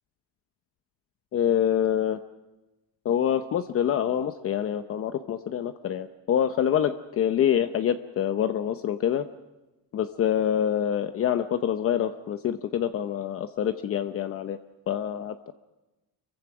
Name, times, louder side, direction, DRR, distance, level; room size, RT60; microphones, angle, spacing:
voice 1, 1.3-2.2 3.0-9.3 9.9-14.6 14.9-15.5, left 9 dB, 40° left, 9 dB, 0.8 m, -26 dB
25.5 x 23.0 x 6.1 m, 1.1 s
cardioid pair, 155°, 37 cm